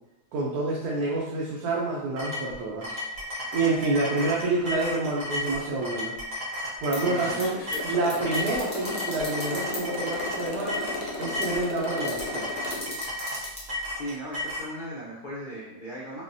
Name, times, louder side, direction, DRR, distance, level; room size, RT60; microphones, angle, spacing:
voice 1, 0.3-3.0 3.5-6.1 6.8-7.6 7.8-10.9 11.2-12.5, right 2 dB, 75° right, -4 dB, 1.1 m, -28 dB
sound 1, 2.2-14.7, left 1 dB, 55° right, 0.4 m, -34 dB
sound 2, 6.7-14.6, left 1 dB, 20° left, 0.8 m, -42 dB
voice 2, 7.0-7.8 14.0-16.2, equal, 85° left, -8 dB, 0.4 m, -38 dB
Motorcycle, 7.1-13.0, left 3 dB, 65° left, 0.8 m, -35 dB
3.9 x 2.1 x 2.5 m, 0.97 s
omnidirectional pair, 1.8 m